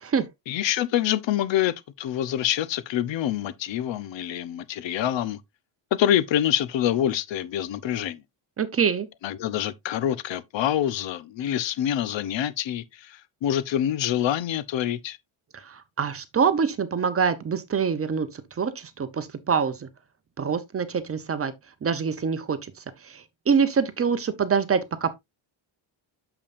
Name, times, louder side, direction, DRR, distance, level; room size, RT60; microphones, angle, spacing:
voice 1, 0.5-5.4 5.9-8.2 9.2-15.2, left 11 dB, 65° left, 0.8 m, -26 dB
voice 2, 8.6-9.1 15.7-19.9 20.4-21.5 21.8-22.6 23.1-25.1, right 6 dB, 30° right, 0.7 m, -25 dB
8.7 x 7.0 x 2.5 m
cardioid pair, 175°, 49 cm